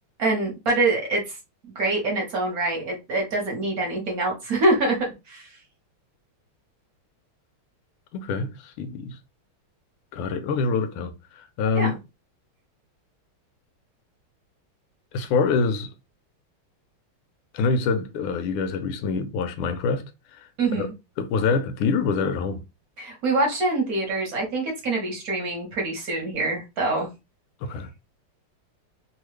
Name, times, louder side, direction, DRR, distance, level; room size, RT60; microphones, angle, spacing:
voice 1, 0.2-1.4 1.7-5.5 11.7-11.9 20.6-20.9 23.0-27.1, right 2 dB, 55° right, 1.2 m, -25 dB
voice 2, 8.1-9.2 10.1-11.9 15.1-15.9 17.5-20.0 20.3-20.5 20.7-20.9 21.2-22.6 27.6-27.9, left 4 dB, 85° left, 1.5 m, -25 dB
3.7 x 2.3 x 3.2 m
omnidirectional pair, 2.3 m